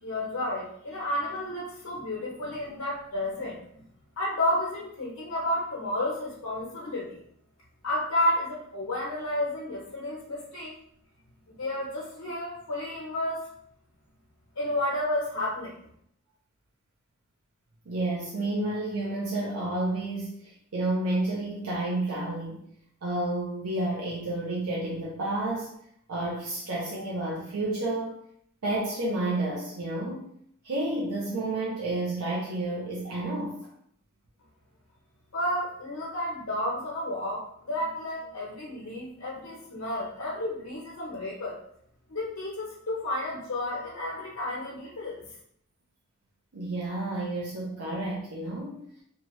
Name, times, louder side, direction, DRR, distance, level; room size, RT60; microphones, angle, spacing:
voice 1, 0.0-3.8 4.2-7.2 7.8-10.7 11.5-13.5 14.6-15.8 35.3-41.6 42.1-45.2, left 1 dB, 75° left, -6 dB, 0.8 m, -31 dB
voice 2, 17.9-22.6 23.0-25.8 26.1-28.2 28.6-30.3 30.6-33.7 46.5-48.9, right 2 dB, 80° right, -5 dB, 0.6 m, -30 dB
2.7 x 2.3 x 3.0 m, 0.69 s
head